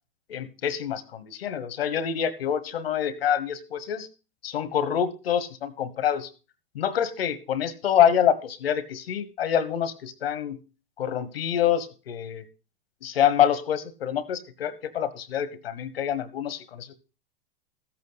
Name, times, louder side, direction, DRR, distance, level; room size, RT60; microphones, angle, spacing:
voice 1, 0.3-4.1 4.4-6.3 6.7-10.6 11.0-12.4 13.0-16.9, left 9 dB, 85° left, 14 dB, 1.4 m, -26 dB
13.5 x 8.4 x 4.1 m, 0.33 s
hypercardioid pair, 120°, 29 cm